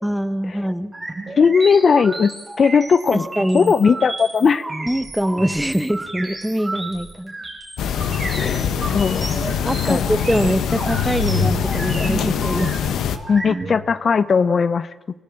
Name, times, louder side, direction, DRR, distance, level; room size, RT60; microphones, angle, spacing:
voice 1, 0.0-0.9 3.1-3.7 4.9-7.3 9.6-12.8, equal, 5° right, 12 dB, 1.3 m, -23 dB
sound 1, 0.9-13.8, right 2 dB, 30° right, 5.2 m, -32 dB
voice 2, 1.4-2.3 2.6-3.3 3.5-4.7 8.4-9.6 9.8-10.1 13.3-14.9, left 5 dB, 50° left, 15 dB, 0.7 m, -18 dB
sound 2, 7.8-13.2, left 7 dB, 75° left, 1.3 m, -23 dB
25.5 x 14.5 x 8.8 m, 1.1 s
supercardioid pair, 55°, 0 cm